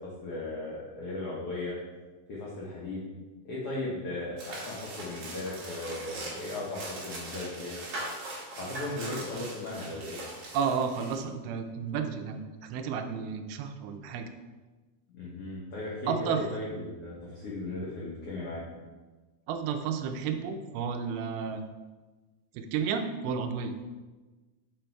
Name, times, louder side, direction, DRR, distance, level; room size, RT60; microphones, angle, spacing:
voice 1, 0.2-1.7 2.3-3.0 3.4-7.8 8.5-10.1 15.1-18.6, left 2 dB, 90° left, -6 dB, 1.3 m, -36 dB
sound 1, 4.4-11.2, right 1 dB, 50° right, 2.2 m, -41 dB
voice 2, 10.5-14.3 16.1-16.4 19.5-21.6 22.5-23.7, right 6 dB, 85° right, 7 dB, 2.4 m, -32 dB
6.7 x 4.4 x 4.4 m, 1.3 s
omnidirectional pair, 4.5 m